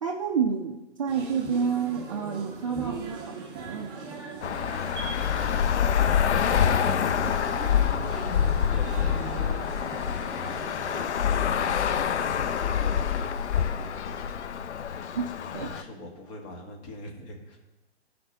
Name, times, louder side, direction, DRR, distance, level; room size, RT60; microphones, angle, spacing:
voice 1, 0.0-4.1 7.2-7.3 15.1-15.3 15.5-15.7, right 6 dB, 30° right, 3 dB, 0.5 m, -29 dB
sound 1, 1.1-11.0, right 4 dB, 15° right, 1.2 m, -40 dB
Traffic noise roadway noise, 4.4-15.8, left 8 dB, 75° left, 0.6 m, -26 dB
voice 2, 6.1-15.2 15.6-17.6, left 1 dB, 25° left, 1 dB, 1.5 m, -44 dB
15.0 x 5.0 x 2.7 m, 1.0 s
hypercardioid pair, 140°, 35 cm